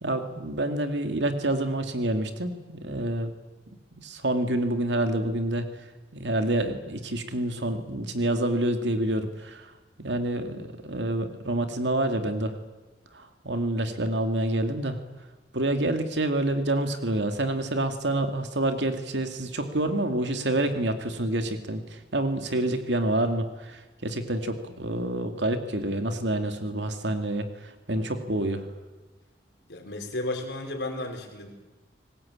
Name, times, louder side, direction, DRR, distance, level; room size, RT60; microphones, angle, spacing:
voice 1, 0.0-3.3 3.7-5.7 6.1-9.7 10.0-12.6 13.1-15.0 15.5-28.7, right 1 dB, 85° right, 7 dB, 2.4 m, -28 dB
voice 2, 29.7-31.5, left 2 dB, 70° left, 3 dB, 4.8 m, -33 dB
25.5 x 19.5 x 8.8 m, 1.2 s
head